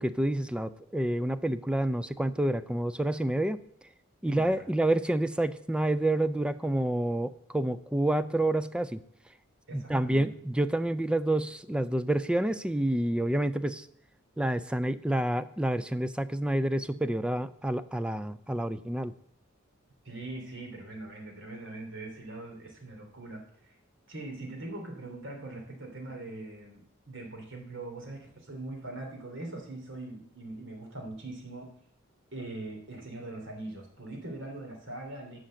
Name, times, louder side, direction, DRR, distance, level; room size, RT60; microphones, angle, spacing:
voice 1, 0.0-3.6 4.2-9.0 9.7-13.9 14.4-19.1, right 1 dB, 5° right, 14 dB, 0.3 m, -28 dB
voice 2, 4.3-4.6 9.7-10.3 20.0-23.8 24.1-31.7 32.3-35.4, right 2 dB, 65° right, 2 dB, 3.0 m, -42 dB
11.5 x 5.2 x 7.6 m, 0.66 s
head